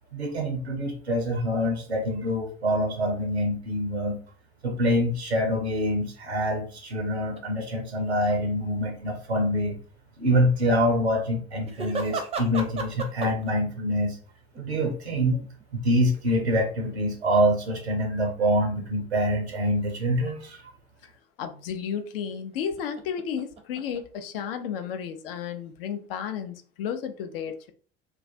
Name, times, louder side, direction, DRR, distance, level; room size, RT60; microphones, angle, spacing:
voice 1, 0.1-4.2 4.6-9.8 10.2-14.2 14.6-15.4 15.8-20.7, equal, 90° right, 4 dB, 0.5 m, -25 dB
sound 1, 7.4-7.5 11.7-13.5 14.5-15.6 16.4-16.5 17.4-17.5 22.3-24.6, right 4 dB, 20° right, 0.5 m, -35 dB
voice 2, 21.4-27.7, left 7 dB, 60° left, 8 dB, 0.5 m, -33 dB
2.3 x 2.2 x 2.6 m, 0.42 s
figure-of-eight pair, 65°, 31 cm